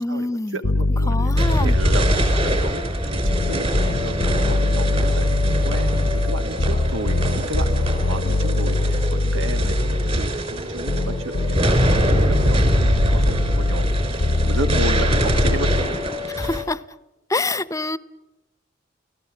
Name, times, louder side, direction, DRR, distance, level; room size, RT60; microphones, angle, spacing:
voice 1, 0.0-0.6 1.1-1.8 16.3-16.8 17.3-18.0, left 2 dB, 15° left, 16 dB, 0.7 m, -26 dB
voice 2, 0.5-15.7, right 2 dB, 80° right, 9 dB, 1.6 m, -33 dB
sound 1, 0.6-2.8 3.3-10.4 10.9-15.9, left 2 dB, 85° left, 0.8 m, -22 dB
sound 2, 1.3-16.6, right 1 dB, 35° right, 3.7 m, -24 dB
29.5 x 18.0 x 7.3 m, 1.0 s
head